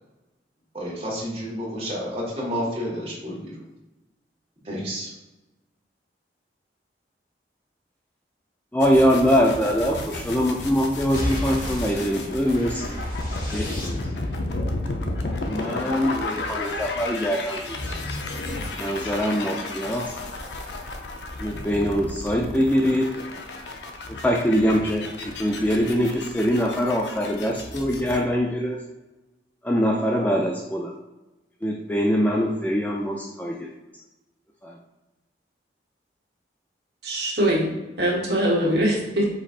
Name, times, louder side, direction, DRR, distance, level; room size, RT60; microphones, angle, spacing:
voice 1, 0.7-3.5 4.6-5.1, equal, 35° right, -5 dB, 1.5 m, -30 dB
voice 2, 8.7-13.0 13.5-14.2 15.5-17.8 18.8-20.2 21.4-23.1 24.1-28.8 29.6-30.9 31.6-33.7 34.6-34.8, equal, 10° left, 1 dB, 0.3 m, -23 dB
sound 1, 8.8-28.2, left 2 dB, 80° left, 0.6 m, -33 dB
sound 2, 11.1-14.4, left 1 dB, 50° left, 1.2 m, -32 dB
voice 3, 37.0-37.7 38.0-39.3, equal, 70° right, -4 dB, 1.4 m, -22 dB
5.1 x 4.0 x 2.5 m, 1.1 s
head